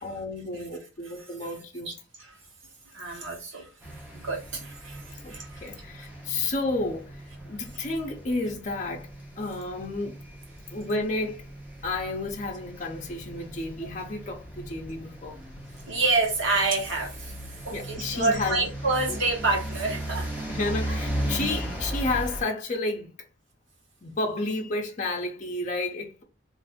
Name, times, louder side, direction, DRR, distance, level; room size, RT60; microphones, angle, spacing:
voice 1, 0.0-1.9 5.2-9.1 9.4-10.2 10.7-11.4 11.8-15.4 17.7-18.6 20.5-23.1 24.0-26.2, left 2 dB, 40° left, 0.5 m, -31 dB
voice 2, 2.9-3.7 4.2-5.7 6.4-6.5 15.9-17.3 17.7-20.3, right 3 dB, 80° right, 1.1 m, -28 dB
sound 1, 3.8-22.4, right 1 dB, 10° right, 0.8 m, -37 dB
2.5 x 2.5 x 3.5 m
head